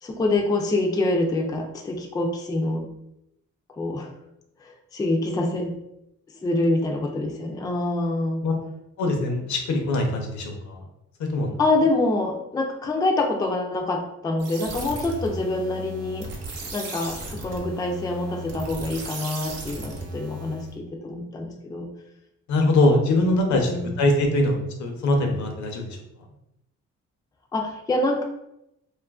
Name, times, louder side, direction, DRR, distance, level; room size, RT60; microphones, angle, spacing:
voice 1, 0.0-2.9 3.7-4.1 4.6-5.7 6.4-8.4 11.6-16.3 16.7-21.9 23.4-24.0 27.5-28.2, left 2 dB, 15° left, 2 dB, 0.3 m, -26 dB
voice 2, 9.0-10.8 11.2-11.6 22.5-25.8, left 2 dB, 70° left, 3 dB, 0.7 m, -22 dB
sound 1, 14.4-20.7, right 1 dB, 55° right, 0.7 m, -36 dB
2.6 x 2.4 x 2.3 m, 0.83 s
cardioid pair, 90°, 30 cm